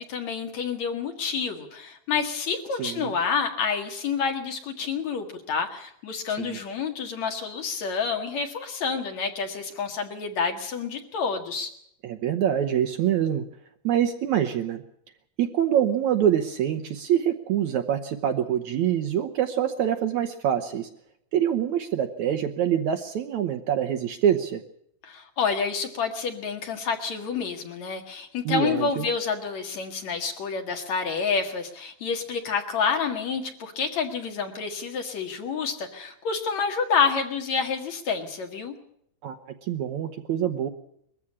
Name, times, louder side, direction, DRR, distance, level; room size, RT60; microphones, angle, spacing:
voice 1, 0.0-11.7 25.0-38.7, left 5 dB, 55° left, 4 dB, 2.8 m, -28 dB
voice 2, 2.8-3.1 6.4-6.6 12.0-13.5 13.8-14.8 15.4-20.9 21.3-24.6 28.5-29.0 39.2-39.4 39.7-40.7, right 10 dB, 65° right, 7 dB, 2.1 m, -25 dB
21.5 x 14.5 x 8.6 m, 0.72 s
omnidirectional pair, 4.1 m